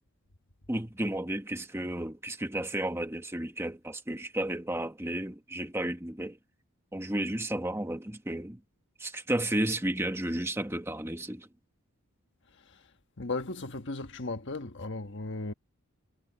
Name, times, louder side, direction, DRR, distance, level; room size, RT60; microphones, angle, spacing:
voice 1, 0.7-6.4 6.9-8.6 9.0-11.5, right 1 dB, 10° right, 1.3 m, -32 dB
voice 2, 13.2-15.5, left 2 dB, 55° left, 1.3 m, -36 dB
head